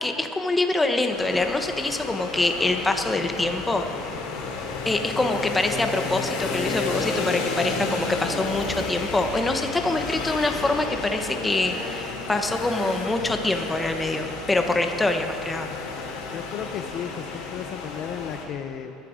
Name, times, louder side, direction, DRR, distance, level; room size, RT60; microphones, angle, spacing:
voice 1, 0.0-3.9 4.8-15.7, left 2 dB, 10° left, 5 dB, 0.9 m, -25 dB
sound 1, 1.1-18.4, left 4 dB, 70° left, 2.9 m, -32 dB
voice 2, 16.3-18.9, left 9 dB, 45° left, 8 dB, 0.6 m, -34 dB
21.0 x 11.5 x 5.0 m, 2.8 s
cardioid pair, 155°, 0 cm